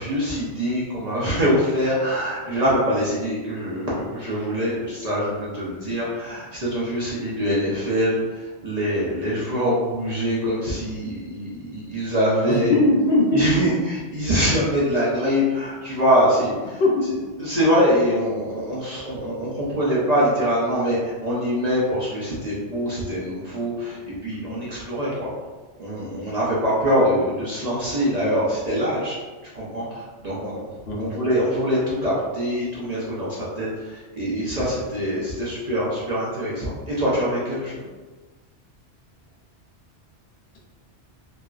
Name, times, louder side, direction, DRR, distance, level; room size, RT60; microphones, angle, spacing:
voice 1, 0.0-12.8 13.3-16.8 17.4-25.3 25.8-29.2 29.5-30.7 31.0-37.8, equal, 45° right, -7 dB, 0.6 m, -24 dB
voice 2, 12.5-13.7 16.8-17.1 30.9-31.1, left 1 dB, 65° left, -2 dB, 0.9 m, -20 dB
3.0 x 2.9 x 2.4 m, 1.3 s
omnidirectional pair, 1.2 m